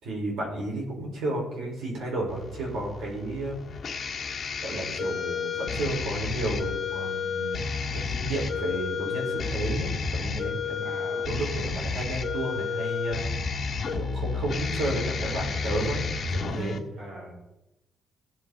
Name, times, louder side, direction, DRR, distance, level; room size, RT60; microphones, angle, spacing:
voice 1, 0.0-3.6 4.6-7.6 7.9-13.6 13.9-16.0 16.3-16.8, right 1 dB, 90° right, -2 dB, 4.9 m, -32 dB
sound 1, 2.3-16.8, left 5 dB, 35° left, 1.4 m, -31 dB
voice 2, 10.8-11.4 17.0-17.4, right 1 dB, 60° right, -3 dB, 4.1 m, -42 dB
16.5 x 7.5 x 4.1 m, 0.92 s
cardioid pair, 145°, 0 cm